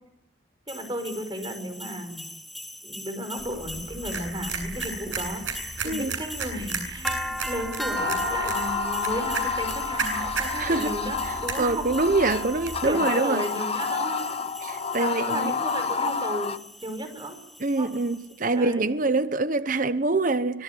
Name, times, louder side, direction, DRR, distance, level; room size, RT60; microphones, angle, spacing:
sound 1, 0.7-18.4, equal, ahead, 2.6 m, -37 dB
voice 1, 0.7-2.2 2.8-5.4 5.8-11.9 12.6-14.3 14.6-17.4 17.8-17.9 18.5-18.9, right 1 dB, 25° right, 5.6 m, -34 dB
sound 2, 3.4-12.9, right 4 dB, 80° right, 7.7 m, -35 dB
sound 3, 7.9-16.6, left 5 dB, 30° left, 0.9 m, -30 dB
voice 2, 10.6-11.0 11.2-13.4 14.6-15.5 17.6-20.6, right 3 dB, 45° right, 0.9 m, -25 dB
25.0 x 21.0 x 9.2 m
head